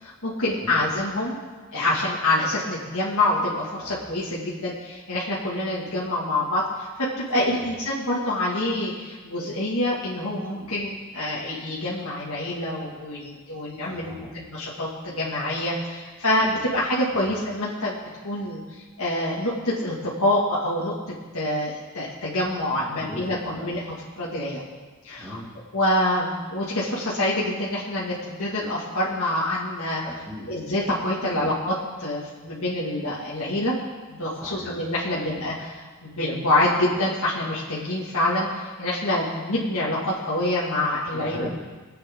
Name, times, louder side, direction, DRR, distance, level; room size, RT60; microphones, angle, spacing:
voice 1, 0.0-1.4 1.7-18.0 18.2-20.9 21.3-23.8 24.2-24.6 25.0-25.4 25.7-30.0 30.5-33.8 34.2-41.5, left 1 dB, 75° left, -7 dB, 2.2 m, -26 dB
voice 2, 13.8-14.3 16.4-16.6 17.1-17.3 22.8-23.7 25.2-25.5 30.0-30.5 31.3-31.5 34.4-34.8 35.1-35.2 36.7-36.8 41.1-41.5, equal, 10° right, -5 dB, 2.8 m, -40 dB
22.5 x 8.7 x 3.8 m, 1.3 s
head